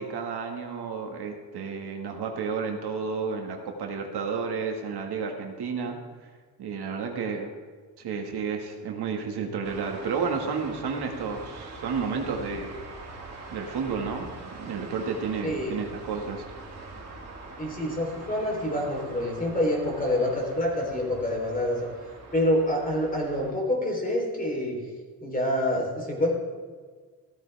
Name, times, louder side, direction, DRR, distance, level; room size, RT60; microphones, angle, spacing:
voice 1, 0.0-6.3 6.6-7.5 8.0-12.7 13.5-16.4, right 5 dB, 75° right, 2 dB, 1.9 m, -31 dB
sound 1, 9.6-23.5, right 3 dB, 40° right, 2.3 m, -43 dB
voice 2, 15.4-15.7 17.6-21.9 22.3-24.8 25.2-26.3, left 1 dB, 20° left, -1 dB, 3.6 m, -27 dB
16.0 x 14.0 x 3.5 m, 1.5 s
wide cardioid pair, 150°, 40 cm